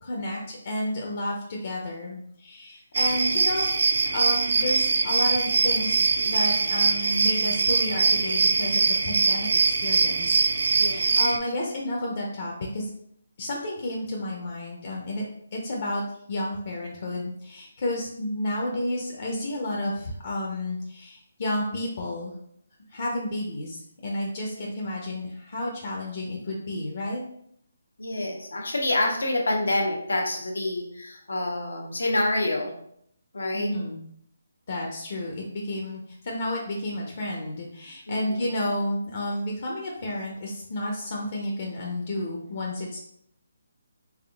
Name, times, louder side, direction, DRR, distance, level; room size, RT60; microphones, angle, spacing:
voice 1, 0.0-12.9 13.4-15.2 15.5-16.0 16.3-22.3 22.9-27.2 33.5-34.0 34.7-43.0, left 1 dB, 50° left, -2 dB, 0.6 m, -31 dB
sound 1, 2.9-11.4, right 4 dB, 60° right, 0.3 m, -23 dB
voice 2, 10.7-11.2 24.7-24.8 28.0-32.7 33.3-33.7 38.1-38.4, left 1 dB, 85° left, 1 dB, 0.8 m, -27 dB
3.5 x 3.5 x 2.3 m, 0.71 s
hypercardioid pair, 160°, 0 cm